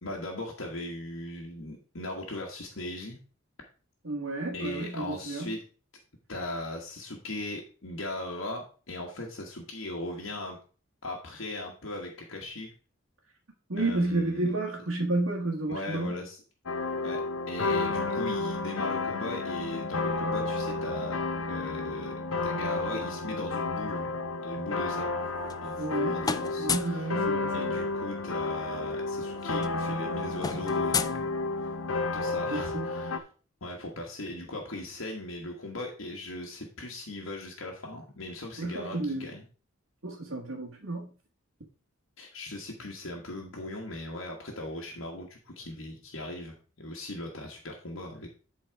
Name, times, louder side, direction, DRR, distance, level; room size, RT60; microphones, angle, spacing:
voice 1, 0.0-3.2 4.5-5.6 6.3-10.6 11.0-12.7 13.8-14.5 15.7-16.4 17.0-17.2 17.5-21.2 21.5-22.1 22.4-24.1 24.4-25.2 25.6-27.1 27.5-31.2 31.6-31.7 32.1-33.3 33.6-39.4 42.2-48.3, left 1 dB, 65° left, 1.5 m, -38 dB
voice 2, 4.0-5.5 13.7-16.2 25.8-26.2 26.6-27.8 32.5-32.9 38.6-39.3 40.0-41.1, right 2 dB, 70° right, 1.7 m, -31 dB
sound 1, 16.7-33.2, left 3 dB, 80° left, 1.0 m, -31 dB
sound 2, 25.2-26.0 26.2-27.0 28.4-28.5 28.8-29.0 29.2-31.9, left 5 dB, 20° left, 0.4 m, -34 dB
11.5 x 4.1 x 4.7 m
head